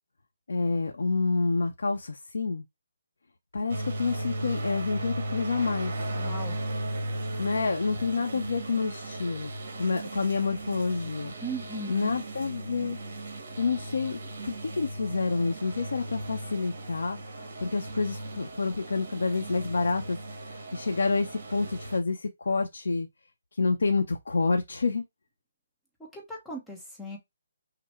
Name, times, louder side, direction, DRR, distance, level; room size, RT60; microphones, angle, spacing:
voice 1, 0.5-2.6 3.5-5.9 7.4-9.5 9.8-11.3 11.9-13.0 13.6-20.2 20.4-23.1 23.5-25.0, left 4 dB, 80° left, 0.8 m, -28 dB
sound 1, 3.7-22.0, right 1 dB, 40° right, 1.5 m, -37 dB
voice 2, 6.1-6.6 11.4-12.2 26.1-27.2, right 1 dB, 5° left, 0.9 m, -37 dB
5.9 x 2.1 x 3.2 m
hypercardioid pair, 175°, 0 cm